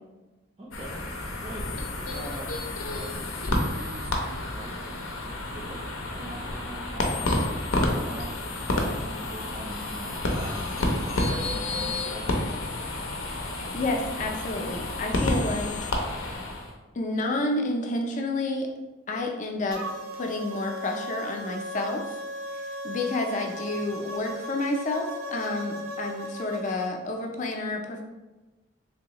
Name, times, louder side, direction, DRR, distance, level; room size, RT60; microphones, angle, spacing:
voice 1, 0.6-2.5 2.9-10.6 11.1-12.7 23.7-23.9, right 1 dB, 30° right, -4 dB, 0.4 m, -43 dB
sound 1, 0.7-16.7, left 1 dB, 85° left, 0.6 m, -30 dB
voice 2, 13.7-15.7 16.9-18.7 19.1-19.8 20.1-22.2 22.5-28.0, left 2 dB, 35° left, 2 dB, 0.4 m, -30 dB
sound 2, 19.7-26.9, equal, 85° right, 0.5 m, -37 dB
3.4 x 3.0 x 2.8 m, 1.1 s
head